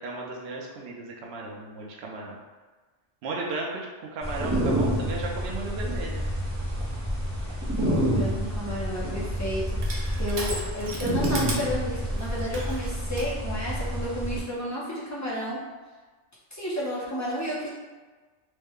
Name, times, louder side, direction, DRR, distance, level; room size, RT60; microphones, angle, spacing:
voice 1, 0.0-2.4 3.2-6.3 10.3-10.4, right 3 dB, 65° right, -1 dB, 0.8 m, -35 dB
sound 1, 4.2-14.4, equal, 15° right, 0.6 m, -29 dB
voice 2, 7.7-15.6 16.5-17.7, equal, 25° left, -7 dB, 0.4 m, -32 dB
Crushing, 8.4-13.3, right 2 dB, 85° right, 1.0 m, -37 dB
3.2 x 2.1 x 3.5 m, 1.3 s
omnidirectional pair, 1.3 m